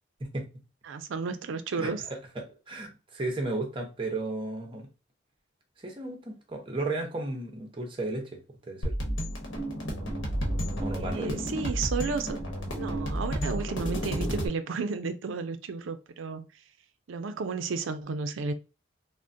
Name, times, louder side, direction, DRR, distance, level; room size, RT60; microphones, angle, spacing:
voice 1, 0.8-2.0 10.9-12.4 12.7-16.5 17.1-18.5, right 4 dB, 90° right, 0.4 m, -33 dB
voice 2, 1.8-4.9 5.8-8.9 10.8-11.5, right 2 dB, 25° right, 0.6 m, -34 dB
sound 1, 8.8-14.5, equal, 80° left, 0.9 m, -31 dB
3.5 x 2.1 x 2.5 m
head